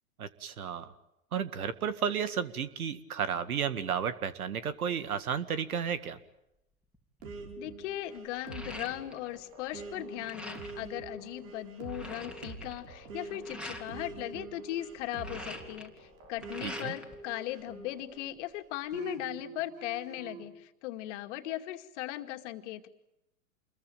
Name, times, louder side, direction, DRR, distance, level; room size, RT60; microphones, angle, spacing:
voice 1, 0.2-0.9 1.3-6.2 16.6-16.9, right 7 dB, 80° right, 13 dB, 2.0 m, -33 dB
sound 1, 6.9-7.2 7.6-9.4 9.7-10.9 11.4-11.5 11.6-13.9 14.9-17.2 17.5-18.4, left 1 dB, ahead, 3.4 m, -45 dB
sound 2, 7.2-18.3 18.9-20.5, right 3 dB, 60° right, 6.1 m, -45 dB
voice 2, 7.6-22.9, left 14 dB, 55° left, 6 dB, 2.4 m, -38 dB
28.5 x 22.0 x 9.0 m, 0.85 s
hypercardioid pair, 110°, 43 cm